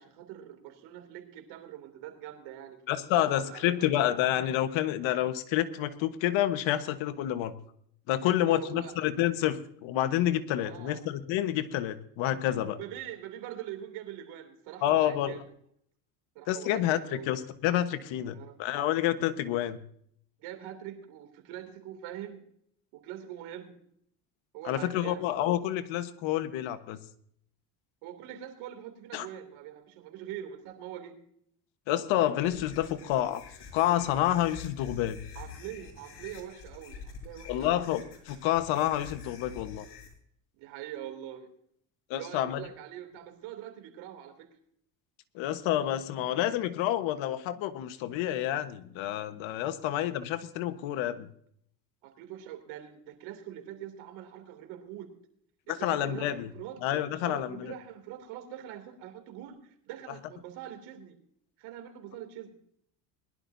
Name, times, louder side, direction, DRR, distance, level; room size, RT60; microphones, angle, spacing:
voice 1, 0.0-2.8 3.1-3.9 8.2-9.0 10.6-11.0 12.6-15.4 16.3-17.3 18.3-18.6 20.4-22.4 22.9-23.8 24.5-25.3 28.0-31.2 35.3-37.9 40.6-41.5 42.1-44.5 49.7-49.9 52.0-55.1 55.7-56.8 57.2-61.2 61.6-62.5, right 11 dB, 80° right, 5 dB, 3.0 m, -43 dB
voice 2, 2.9-7.5 8.1-12.8 14.8-15.4 16.5-19.8 24.6-27.0 29.1-29.3 31.9-33.4 33.7-35.2 37.5-39.8 42.1-42.6 45.3-51.3 55.7-56.5 56.8-57.7, left 12 dB, 70° left, 10 dB, 1.4 m, -29 dB
sound 1, 32.4-40.1, left 5 dB, 55° left, 6.2 m, -46 dB
21.5 x 12.0 x 2.7 m, 0.66 s
supercardioid pair, 95°, 47 cm